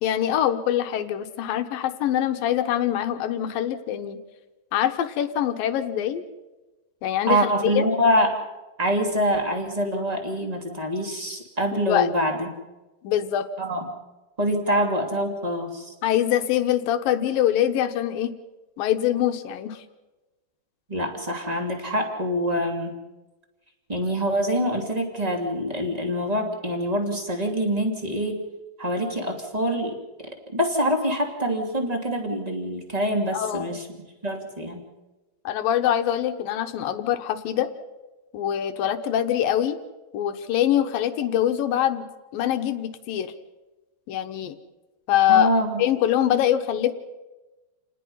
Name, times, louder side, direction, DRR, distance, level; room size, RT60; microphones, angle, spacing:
voice 1, 0.0-4.2 4.7-6.2 7.0-7.8 11.9-12.1 13.0-13.5 14.7-14.8 16.0-18.3 18.8-19.8 33.3-33.7 35.4-37.7 38.3-39.8 40.1-43.3 44.1-44.6 45.1-45.5 45.8-46.9, left 11 dB, 70° left, 8 dB, 2.5 m, -24 dB
voice 2, 7.3-8.4 8.8-12.5 13.6-13.9 14.4-15.9 20.9-23.0 23.9-28.4 28.8-33.9 34.2-34.8 45.3-45.8, equal, 15° right, 3 dB, 1.9 m, -25 dB
29.0 x 19.5 x 5.6 m, 1.1 s
omnidirectional pair, 4.7 m